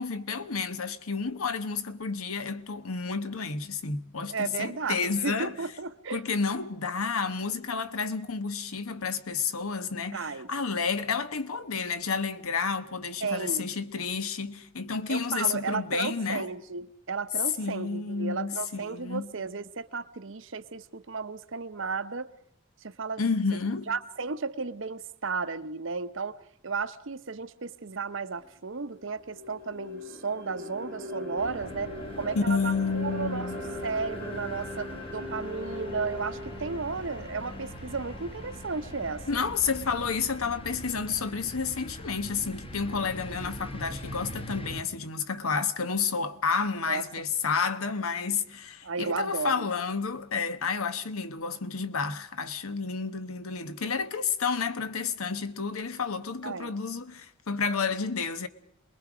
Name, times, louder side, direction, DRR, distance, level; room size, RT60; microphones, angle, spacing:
voice 1, 0.0-5.5 6.1-16.5 17.6-19.3 23.2-23.9 32.4-33.6 39.3-58.5, left 5 dB, 85° left, 1.1 m, -30 dB
voice 2, 4.3-6.2 10.1-10.5 13.2-13.7 15.1-22.3 22.8-23.2 23.5-23.6 23.9-26.4 26.6-39.5 46.8-47.0 48.8-49.7 56.4-56.8, right 4 dB, 60° right, 0.8 m, -34 dB
sound 1, 28.3-28.4 28.9-40.9, left 2 dB, 45° left, 3.0 m, -40 dB
sound 2, 31.4-44.8, equal, 25° left, 1.1 m, -43 dB
27.0 x 21.0 x 5.0 m
head